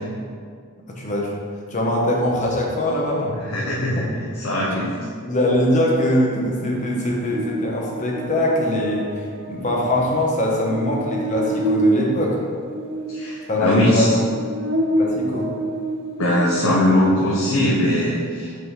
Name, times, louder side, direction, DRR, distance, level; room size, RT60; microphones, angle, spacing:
voice 1, 0.9-1.3 1.7-3.3 3.9-4.1 5.2-12.4 13.5-14.2 15.0-15.5, left 1 dB, 35° left, -2 dB, 1.0 m, -22 dB
voice 2, 3.4-4.1 4.3-4.9 13.1-14.1 16.2-18.5, left 1 dB, 70° left, -5 dB, 0.9 m, -20 dB
Buzz, 7.3-16.8, right 1 dB, 55° right, 0.8 m, -27 dB
5.6 x 4.1 x 4.7 m, 2.1 s
head